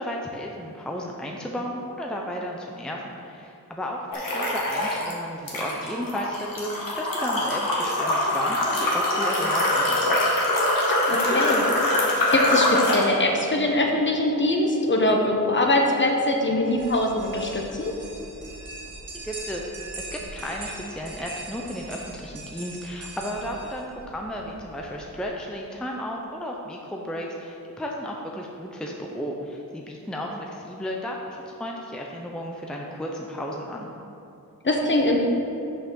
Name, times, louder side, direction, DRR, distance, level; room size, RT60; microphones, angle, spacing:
voice 1, 0.0-4.0 4.3-10.3 19.2-33.9, equal, ahead, -1 dB, 0.6 m, -34 dB
sound 1, 4.1-5.1 5.5-13.1, left 1 dB, 70° left, 1.6 m, -23 dB
voice 2, 11.1-17.9 34.6-35.2, left 1 dB, 35° left, 1 dB, 1.1 m, -23 dB
sound 2, 16.6-25.3, right 2 dB, 60° right, 1.8 m, -41 dB
6.4 x 5.6 x 6.2 m, 2.8 s
wide cardioid pair, 120°, 34 cm